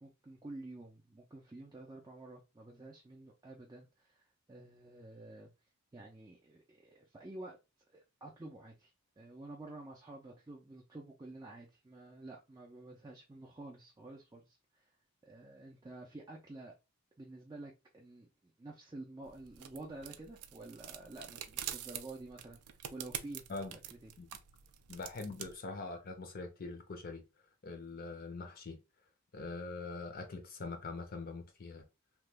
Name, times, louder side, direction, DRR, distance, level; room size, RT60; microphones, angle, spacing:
voice 1, 0.0-5.5 5.9-7.6 7.9-14.9 15.2-16.7 17.2-22.6 22.9-23.4 23.7-24.1, right 2 dB, 15° right, 0.4 m, -50 dB
sound 1, 19.2-25.5, right 11 dB, 85° right, 0.4 m, -46 dB
voice 2, 24.9-27.3 27.6-28.8 29.3-31.8, left 3 dB, 40° left, 0.5 m, -43 dB
2.9 x 2.2 x 3.3 m
head